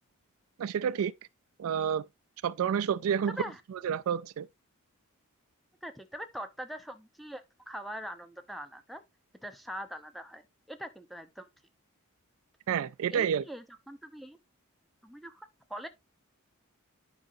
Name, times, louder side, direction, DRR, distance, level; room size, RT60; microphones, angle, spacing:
voice 1, 0.6-1.1 1.6-2.0 2.4-3.4 3.7-4.5 12.7-13.4, right 8 dB, 65° right, 0.3 m, -29 dB
voice 2, 5.8-9.0 9.4-11.5 13.1-14.4 15.0-15.9, equal, ahead, 0.7 m, -42 dB
10.5 x 4.9 x 2.6 m
head